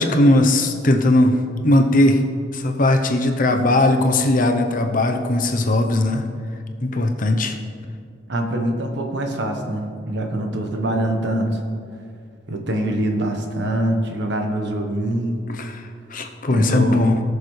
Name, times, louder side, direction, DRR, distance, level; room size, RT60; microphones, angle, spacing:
voice 1, 0.0-1.4 1.6-2.2 2.5-6.2 6.8-7.6 15.5-17.2, left 1 dB, 45° left, 5 dB, 0.8 m, -18 dB
voice 2, 8.3-11.5 12.5-15.5 16.5-17.1, right 1 dB, 70° right, 3 dB, 1.2 m, -24 dB
18.5 x 6.7 x 3.3 m, 2.2 s
head